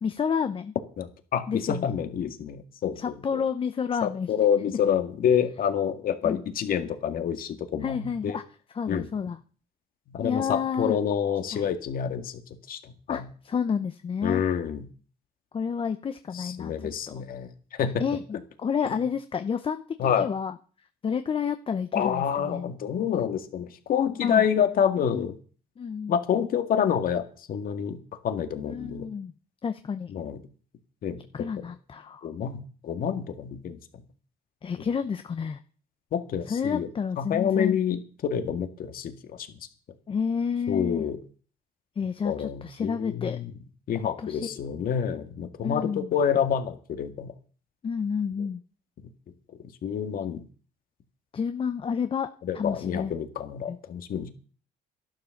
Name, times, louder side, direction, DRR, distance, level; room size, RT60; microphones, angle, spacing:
voice 1, 0.0-0.7 1.5-1.8 3.0-4.3 6.2-6.4 7.8-8.4 8.7-9.4 10.2-11.0 11.5-11.7 13.1-14.4 15.5-17.2 18.0-20.5 21.0-22.7 24.2-24.5 25.0-25.3 25.8-26.2 28.6-29.3 29.6-30.2 31.3-32.3 34.6-35.6 36.5-37.8 40.1-41.0 42.0-43.4 43.9-44.6 45.6-46.1 47.8-48.6 51.3-52.3 52.5-53.1 53.7-53.8, left 6 dB, 30° left, 10 dB, 0.8 m, -30 dB
voice 2, 1.0-3.4 4.0-8.4 8.9-9.1 10.1-12.4 12.7-13.2 14.2-14.8 16.3-17.9 20.0-20.3 21.9-25.4 26.1-28.0 28.2-29.1 30.1-30.4 31.0-31.2 32.2-33.8 36.1-36.9 37.2-39.5 40.7-41.2 42.2-43.5 43.9-47.3 49.8-50.4 52.5-54.3, left 8 dB, 60° left, 8 dB, 2.0 m, -28 dB
12.5 x 11.5 x 6.6 m, 0.41 s
cardioid pair, 110°, 17 cm